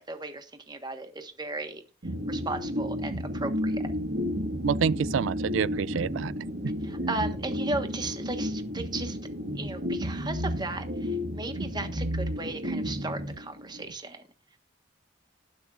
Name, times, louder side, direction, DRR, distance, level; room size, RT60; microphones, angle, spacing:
voice 1, 0.0-1.8 2.3-3.9 6.8-9.2 9.6-14.2, right 2 dB, 20° right, 1.3 m, -36 dB
sound 1, 2.0-13.9, equal, 70° right, 1.7 m, -32 dB
voice 2, 4.6-6.3 6.6-6.7, right 7 dB, 90° right, 0.4 m, -27 dB
19.5 x 6.5 x 2.5 m
head